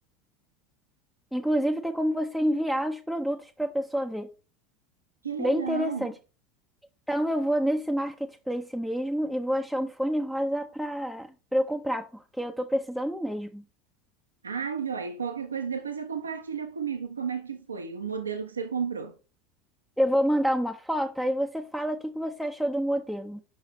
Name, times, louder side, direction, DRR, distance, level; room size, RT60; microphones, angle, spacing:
voice 1, 1.3-4.3 5.4-6.1 7.1-13.6 20.0-23.4, equal, ahead, 0.5 m, -28 dB
voice 2, 5.2-6.1 14.4-19.1, right 6 dB, 80° right, 0.6 m, -32 dB
5.6 x 5.5 x 3.1 m
figure-of-eight pair, 75°, 0 cm